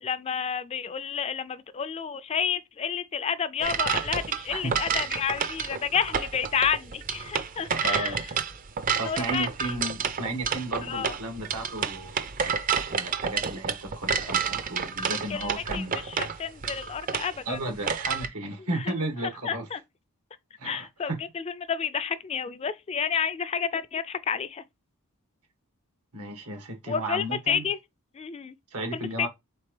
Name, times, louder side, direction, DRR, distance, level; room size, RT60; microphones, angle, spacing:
voice 1, 0.0-8.2 9.1-9.5 10.9-11.1 15.3-17.6 19.4-19.8 20.6-21.4 21.7-24.6 26.9-27.8 28.1-28.6 28.9-29.3, left 7 dB, 30° left, 0.3 m, -30 dB
sound 1, 3.6-18.3, right 6 dB, 40° right, 0.5 m, -30 dB
voice 2, 7.7-8.2 9.0-12.6 12.9-16.0 17.5-19.7 20.6-21.2 26.1-27.7 28.7-29.3, right 2 dB, 90° right, 1.7 m, -34 dB
4.3 x 3.6 x 3.3 m
head